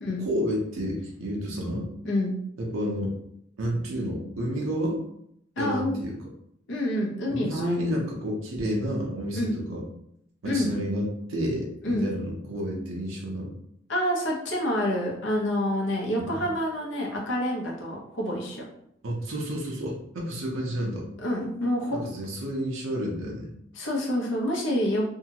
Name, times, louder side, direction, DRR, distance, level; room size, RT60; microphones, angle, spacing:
voice 1, 0.2-1.9 2.6-3.1 3.6-5.0 5.6-6.1 7.3-9.8 10.4-13.5 16.2-16.4 19.0-21.1 21.9-23.5, equal, 85° right, -2 dB, 0.7 m, -30 dB
voice 2, 2.0-2.4 5.6-6.0 6.7-7.9 9.3-9.5 10.4-10.7 11.8-12.1 13.9-18.6 21.2-22.0 23.7-25.0, left 1 dB, 60° left, -3 dB, 0.8 m, -27 dB
2.8 x 2.4 x 2.8 m, 0.73 s
head